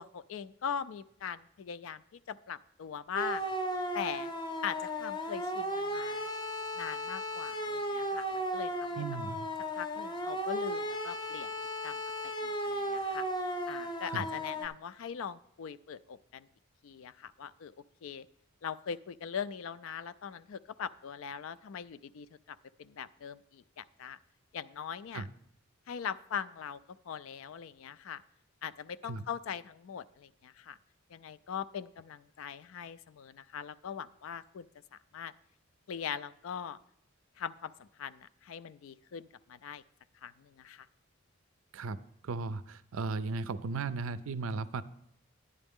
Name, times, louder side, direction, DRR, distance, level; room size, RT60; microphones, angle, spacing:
voice 1, 0.0-3.5 3.9-4.3 4.6-6.3 6.8-9.1 9.7-11.5 11.8-13.3 13.7-16.5 16.8-17.7 18.0-18.3 18.6-24.2 24.5-25.3 25.9-26.8 27.1-28.2 28.6-30.8 31.1-34.7 34.9-35.3 35.9-36.8 37.4-39.8 40.2-40.9, left 7 dB, 65° left, 16 dB, 0.3 m, -41 dB
sound 1, 3.2-14.7, equal, 20° left, 0.7 m, -35 dB
voice 2, 9.0-9.5 14.1-14.2 25.1-25.3 29.1-29.2 41.7-42.0 42.2-44.8, right 4 dB, 70° right, 15 dB, 0.4 m, -36 dB
11.0 x 9.7 x 3.6 m, 0.71 s
head